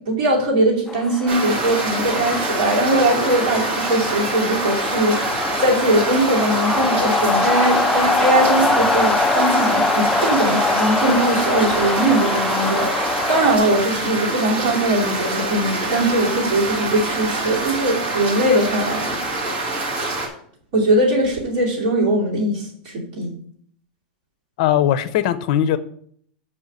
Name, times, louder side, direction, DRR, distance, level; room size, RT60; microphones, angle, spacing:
voice 1, 0.1-5.3 5.6-19.1 20.7-23.3, right 1 dB, 50° right, -4 dB, 2.7 m, -20 dB
sound 1, 0.9-13.6, left 3 dB, 5° left, 0.3 m, -23 dB
sound 2, 1.3-20.3, right 2 dB, 30° right, 1.9 m, -25 dB
voice 2, 24.6-25.8, left 10 dB, 50° left, 14 dB, 0.7 m, -19 dB
6.1 x 5.6 x 6.6 m, 0.62 s
supercardioid pair, 165°, 5 cm